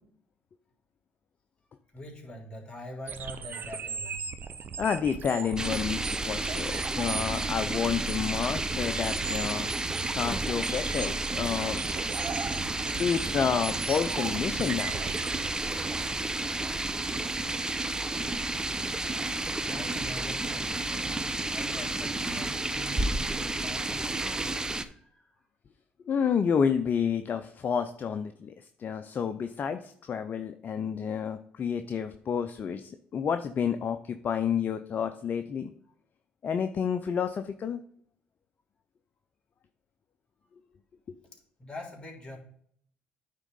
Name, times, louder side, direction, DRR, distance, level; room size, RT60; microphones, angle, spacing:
voice 1, 1.9-4.3 19.6-20.8 21.5-25.4 41.3-42.4, left 1 dB, 25° left, 1 dB, 3.4 m, -44 dB
sound 1, 3.1-16.1, right 6 dB, 50° right, 0.7 m, -39 dB
voice 2, 4.8-9.7 10.1-11.8 12.9-15.1 26.0-35.7 36.4-37.8 41.1-41.2, left 7 dB, 45° left, 9 dB, 0.6 m, -30 dB
sound 2, 5.6-24.9, right 2 dB, 15° right, 0.8 m, -31 dB
9.2 x 3.7 x 5.2 m, 0.64 s
hypercardioid pair, 60°, 4 cm